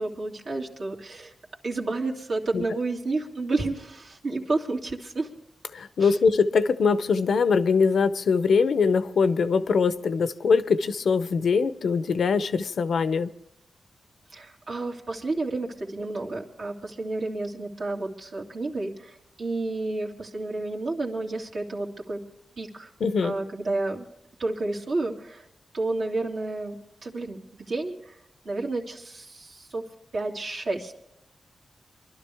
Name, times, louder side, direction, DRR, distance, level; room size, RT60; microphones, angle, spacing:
voice 1, 0.0-1.3 1.6-5.3 6.0-6.2 14.3-22.2 22.6-22.9 23.2-24.1 24.4-25.5 25.7-28.2 28.4-29.8 30.1-30.9, right 2 dB, 70° right, 2.4 m, -31 dB
voice 2, 5.7-13.3 23.0-23.3, left 5 dB, 80° left, 0.6 m, -22 dB
24.0 x 12.0 x 3.4 m
cardioid pair, 75°, 0 cm